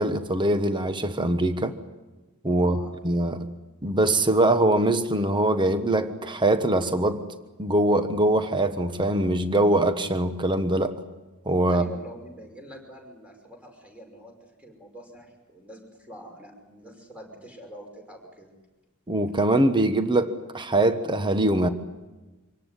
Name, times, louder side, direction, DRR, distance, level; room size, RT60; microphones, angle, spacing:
voice 1, 0.0-1.7 2.4-2.8 3.0-3.5 3.8-7.2 7.6-11.0 11.5-11.8 19.1-21.7, right 1 dB, 20° right, 1.2 m, -23 dB
voice 2, 2.5-2.9 11.7-18.5, equal, 5° right, 5.5 m, -45 dB
26.0 x 17.5 x 9.9 m
head